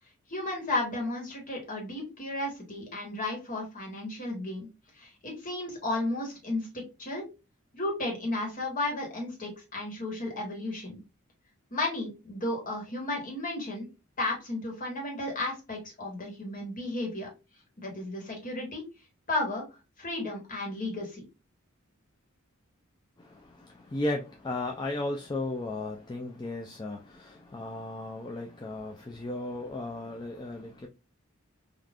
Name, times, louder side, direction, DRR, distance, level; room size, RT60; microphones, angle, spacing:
voice 1, 0.3-4.7 4.9-7.3 7.7-11.0 11.7-13.9 14.2-17.3 17.8-18.8 19.3-19.7 20.0-21.2, left 2 dB, 40° left, 1.3 m, -33 dB
voice 2, 23.2-30.9, left 2 dB, 20° left, 0.4 m, -35 dB
3.4 x 2.4 x 2.4 m
head